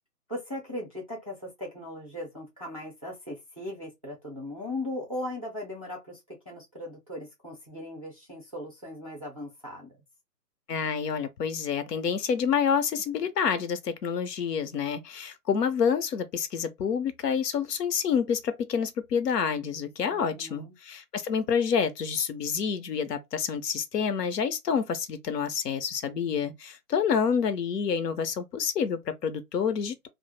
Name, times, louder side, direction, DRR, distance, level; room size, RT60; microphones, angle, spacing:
voice 1, 0.3-9.9 20.1-20.7, left 1 dB, 25° right, 0.4 m, -38 dB
voice 2, 10.7-30.1, left 7 dB, 80° left, 0.7 m, -28 dB
2.0 x 2.0 x 3.0 m
hypercardioid pair, 150°, 48 cm